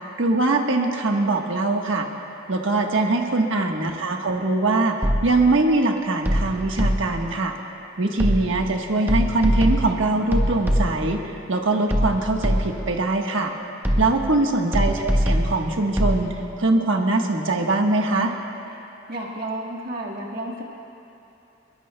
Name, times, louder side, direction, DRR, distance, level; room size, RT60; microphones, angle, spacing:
voice 1, 0.2-2.1 2.5-7.5 8.0-11.2 11.5-13.5 14.0-18.3, right 2 dB, 80° right, 2 dB, 1.3 m, -22 dB
voice 2, 2.9-3.2 19.1-20.6, right 1 dB, 55° right, -3 dB, 1.7 m, -33 dB
sound 1, 5.0-5.5 6.3-7.3 8.2-8.7 9.1-11.2 11.9-13.0 13.8-14.4 14.7-16.2, equal, 10° right, 1.2 m, -22 dB
21.5 x 21.0 x 2.2 m, 2.9 s
head